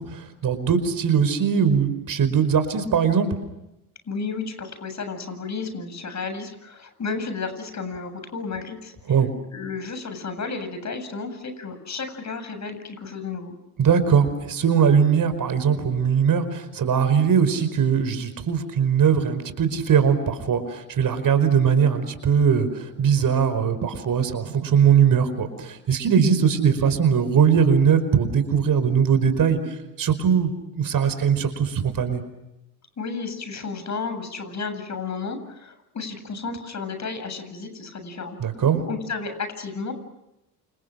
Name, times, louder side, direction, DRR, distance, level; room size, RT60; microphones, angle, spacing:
voice 1, 0.0-3.3 9.1-9.3 13.8-32.2 38.4-38.8, right 7 dB, 45° right, 11 dB, 5.1 m, -20 dB
voice 2, 4.1-9.2 9.5-13.5 33.0-38.4 38.9-39.9, left 4 dB, 40° left, 9 dB, 8.0 m, -32 dB
29.0 x 28.5 x 6.6 m, 0.90 s
hypercardioid pair, 65°, 45 cm